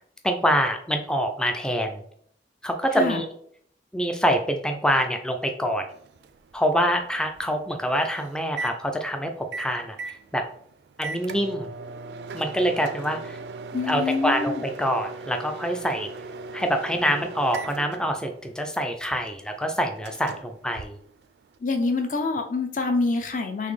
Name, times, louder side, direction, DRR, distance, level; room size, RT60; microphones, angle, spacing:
voice 1, 0.2-2.0 2.6-3.3 3.9-5.9 6.5-10.4 11.0-11.7 12.3-13.4 13.8-16.1 16.5-21.0, equal, 5° left, 5 dB, 0.3 m, -25 dB
Microwave oven, 5.9-21.6, right 3 dB, 75° right, 0.3 m, -39 dB
voice 2, 13.7-14.6 21.6-23.7, left 3 dB, 45° left, 5 dB, 0.6 m, -26 dB
4.0 x 3.1 x 3.2 m, 0.65 s
head